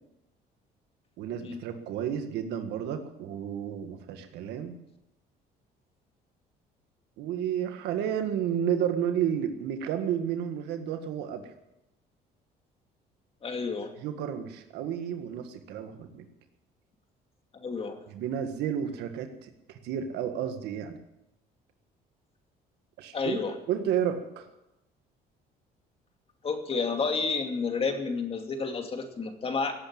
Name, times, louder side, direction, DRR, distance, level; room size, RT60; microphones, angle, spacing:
voice 1, 1.2-4.8 7.2-11.5 14.0-16.2 18.1-21.0 23.0-23.3 23.7-24.5, right 9 dB, 85° right, 7 dB, 1.7 m, -31 dB
voice 2, 13.4-13.9 17.5-18.0 23.1-23.5 26.4-29.7, left 4 dB, 35° left, 4 dB, 2.6 m, -30 dB
17.0 x 8.6 x 8.8 m, 0.89 s
cardioid pair, 110°, 17 cm